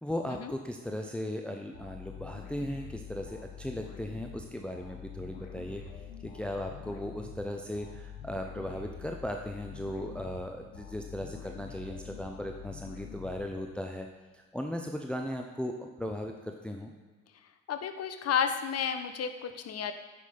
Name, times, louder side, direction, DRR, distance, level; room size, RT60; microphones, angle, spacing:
voice 1, 0.0-5.8 6.2-14.1 14.3-16.9, left 1 dB, 5° left, 3 dB, 0.8 m, -37 dB
sound 1, 1.7-14.0, left 7 dB, 75° left, 1.4 m, -46 dB
voice 2, 17.7-19.9, left 7 dB, 40° left, 8 dB, 1.0 m, -31 dB
9.5 x 6.0 x 5.2 m, 1.3 s
hypercardioid pair, 60°, 39 cm